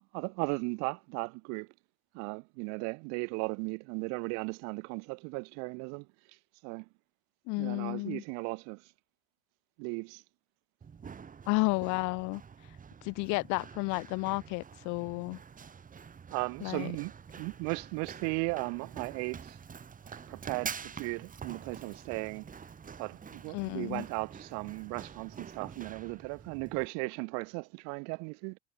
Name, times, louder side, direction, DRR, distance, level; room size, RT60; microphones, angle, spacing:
voice 1, 0.1-1.7 2.1-6.1 6.6-6.9 7.6-8.8 9.8-10.2 16.3-19.6 20.3-22.5 23.0-28.6, right 35 dB, 50° right, 0.4 m, -36 dB
voice 2, 7.5-8.2 11.5-12.4 13.0-15.4 16.6-16.9 23.5-24.0, left 27 dB, 55° left, 1.4 m, -32 dB
Run, 10.8-26.9, right 6 dB, 25° right, 2.8 m, -47 dB
hypercardioid pair, 100°, 34 cm